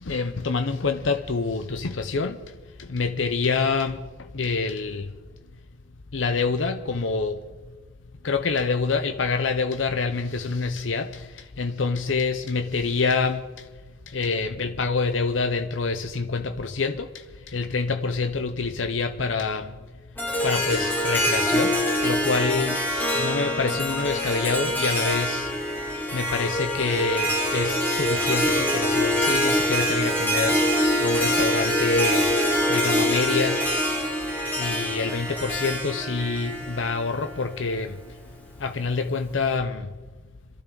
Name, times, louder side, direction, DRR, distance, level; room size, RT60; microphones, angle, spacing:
voice 1, 0.0-2.4 2.8-4.0 4.3-5.1 6.1-7.4 8.2-13.7 14.1-19.7 20.4-21.8 22.0-22.9 23.1-25.5 26.1-32.3 32.7-33.6 34.6-38.0 38.6-39.9, left 4 dB, 80° left, 0.8 m, -26 dB
Harp, 20.2-37.4, equal, 10° left, 2.0 m, -24 dB
27.0 x 12.5 x 4.0 m
head